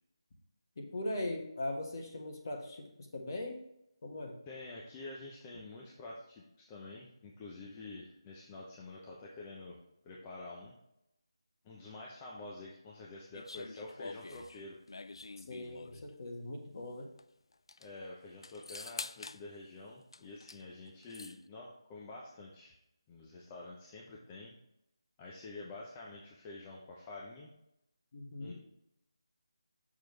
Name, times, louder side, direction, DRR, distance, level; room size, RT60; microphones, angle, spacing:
voice 1, 0.8-2.9 3.1-3.6 4.0-4.3 15.5-17.1 28.1-28.5, left 1 dB, 45° left, 1 dB, 1.5 m, -40 dB
voice 2, 4.5-10.8 11.6-14.7 17.8-22.7 23.1-24.6 25.2-27.5 28.4-28.5, left 2 dB, 15° left, -3 dB, 0.6 m, -48 dB
sound 1, 13.3-16.1 17.2-17.3 17.5-17.9 18.4-19.4 20.1-20.6 20.9-21.4, left 3 dB, 70° left, 0.3 m, -46 dB
6.6 x 6.4 x 3.2 m, 0.83 s
figure-of-eight pair, 165°, 3 cm